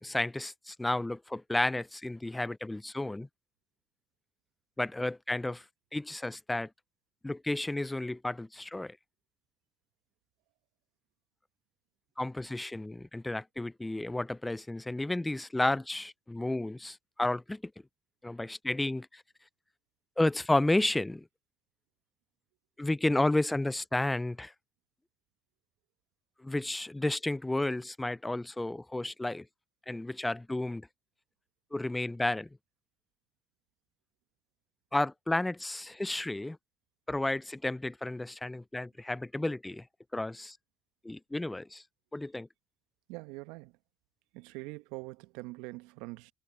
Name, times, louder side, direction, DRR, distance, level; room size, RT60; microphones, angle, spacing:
voice 1, 0.0-3.3 4.8-5.6 5.9-6.7 7.2-9.0 12.2-17.7 18.2-19.2 20.2-21.3 22.8-24.5 26.4-29.5 29.9-30.9 31.7-32.5 34.9-36.6 37.1-39.9 40.1-40.6 41.0-41.8 42.1-42.5, left 2 dB, 10° left, 0.7 m, -32 dB
voice 2, 43.1-43.7 44.3-46.3, right 23 dB, 75° right, 1.1 m, -43 dB
hypercardioid pair, 65°, 0 cm